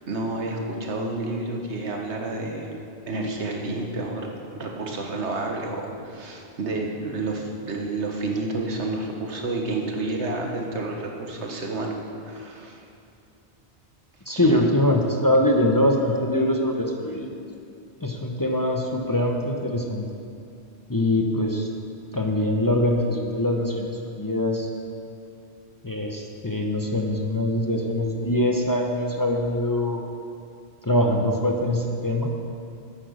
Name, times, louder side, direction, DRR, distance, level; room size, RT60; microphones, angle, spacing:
voice 1, 0.1-2.7 3.1-4.3 4.5-12.0 12.2-12.8 14.4-14.6, right 2 dB, 90° right, 1 dB, 1.6 m, -30 dB
voice 2, 14.3-17.4 18.0-20.1 20.9-21.7 22.1-24.7 25.8-30.0 30.8-32.3, left 1 dB, 20° left, 1 dB, 0.8 m, -23 dB
9.3 x 9.0 x 6.4 m, 2.5 s
omnidirectional pair, 1.1 m